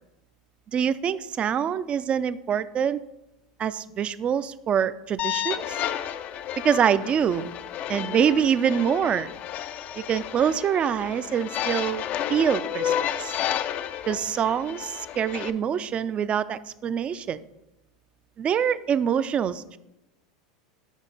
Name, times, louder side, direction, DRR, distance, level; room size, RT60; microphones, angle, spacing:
voice 1, 0.7-3.0 3.6-5.8 6.6-7.5 7.9-9.3 10.1-12.0 12.3-12.9 13.2-13.4 14.1-17.4 18.4-19.8, right 8 dB, 30° right, 15 dB, 0.3 m, -25 dB
sound 1, 5.2-15.5, left 10 dB, 45° left, 0.4 m, -31 dB
6.3 x 5.4 x 3.9 m, 0.95 s
hypercardioid pair, 90°, 4 cm